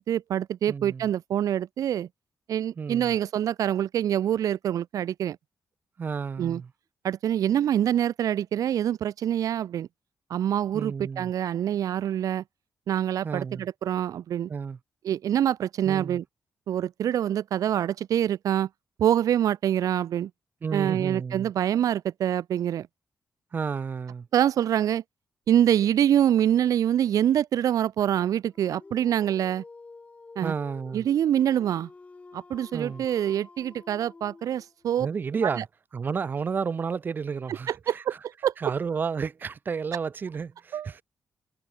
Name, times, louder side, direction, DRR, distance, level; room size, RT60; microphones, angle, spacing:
voice 1, 0.0-2.1 2.5-5.4 6.4-6.6 7.0-9.9 10.3-12.4 12.9-14.5 15.0-16.2 16.7-18.7 19.0-20.3 20.7-22.9 24.3-25.0 25.5-29.6 30.4-30.5 30.9-31.9 32.3-35.1 35.6-35.7 37.7-38.1 38.4-38.5 40.7-40.9, right 10 dB, 70° right, 0.9 m, -25 dB
voice 2, 0.7-1.1 2.8-3.2 6.0-6.7 10.7-11.3 13.2-13.7 14.5-14.8 15.8-16.2 20.6-21.5 23.5-24.3 30.4-31.1 32.7-33.1 35.0-35.7 35.9-38.2 38.6-41.0, right 5 dB, 30° right, 0.6 m, -31 dB
Dog, 28.5-34.9, left 3 dB, 20° left, 8.0 m, -49 dB
wide cardioid pair, 175°, 6 cm